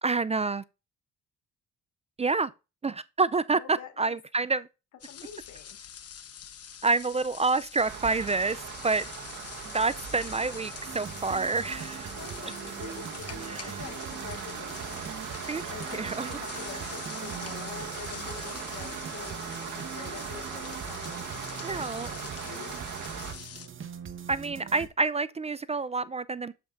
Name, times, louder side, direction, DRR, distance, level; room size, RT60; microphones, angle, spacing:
voice 1, 0.0-0.6 2.2-2.5 2.8-4.7 6.8-9.0 9.6-12.1 13.4-13.8 15.5-15.6 15.9-16.4 21.6-22.1 24.3-26.5, right 3 dB, 20° right, 0.4 m, -28 dB
voice 2, 3.5-4.2 5.1-5.8 12.0-22.8, left 9 dB, 75° left, 1.6 m, -46 dB
sound 1, 5.0-23.7, left 8 dB, 55° left, 1.1 m, -45 dB
sound 2, 7.8-23.3, right 8 dB, 85° right, 1.7 m, -40 dB
sound 3, 10.9-24.9, right 7 dB, 40° right, 1.0 m, -43 dB
7.8 x 7.7 x 2.6 m
cardioid pair, 90°, 30 cm